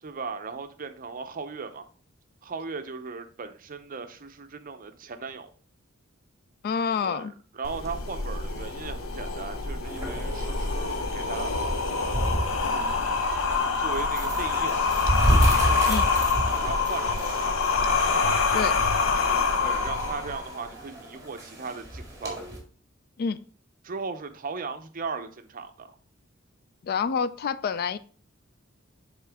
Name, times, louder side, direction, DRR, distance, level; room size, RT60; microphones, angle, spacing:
voice 1, 0.0-1.8 2.4-5.5 7.0-7.3 7.5-12.2 13.8-14.8 16.5-17.7 19.6-22.4 23.8-25.9, right 4 dB, 45° right, 9 dB, 0.6 m, -37 dB
voice 2, 6.6-7.3 15.9-16.1 18.5-18.8 23.2-23.4 26.8-28.0, left 6 dB, 50° left, 15 dB, 0.3 m, -27 dB
sound 1, 7.6-20.6, left 4 dB, 85° left, 0.7 m, -26 dB
sound 2, 9.8-22.6, right 1 dB, 15° right, 1.9 m, -31 dB
9.3 x 3.7 x 3.4 m, 0.41 s
head